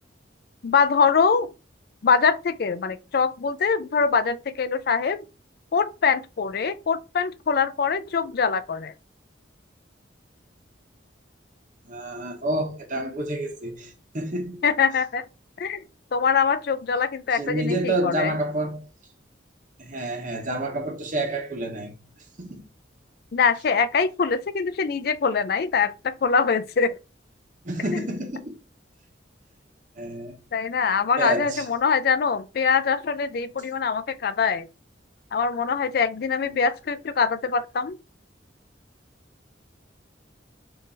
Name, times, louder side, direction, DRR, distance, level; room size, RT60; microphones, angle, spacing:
voice 1, 0.6-1.5 2.0-5.2 5.7-8.9 14.6-15.2 15.6-15.8 16.1-18.3 23.3-27.0 27.9-28.0 30.5-34.7 35.3-37.9, left 5 dB, 55° left, 0.4 m, -23 dB
voice 2, 11.8-14.6 17.3-18.9 19.8-22.0 22.4-22.6 27.6-28.6 30.0-30.4 31.2-31.7 36.4-36.6, right 1 dB, 45° right, 0.9 m, -29 dB
3.8 x 2.6 x 4.0 m
head